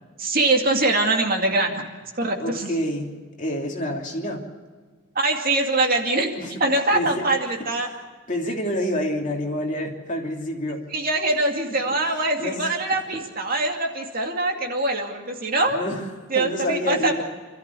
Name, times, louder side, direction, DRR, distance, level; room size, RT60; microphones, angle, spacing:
voice 1, 0.2-1.8 2.2-2.7 5.1-6.3 6.6-7.9 10.9-15.8 16.3-17.2, right 2 dB, 45° right, 2 dB, 2.4 m, -23 dB
voice 2, 2.4-3.1 3.4-4.5 6.4-6.5 6.9-7.2 8.3-10.8 12.4-12.7 15.7-16.0 16.3-17.2, left 1 dB, 35° left, 0 dB, 2.9 m, -27 dB
27.5 x 13.5 x 6.9 m, 1.4 s
head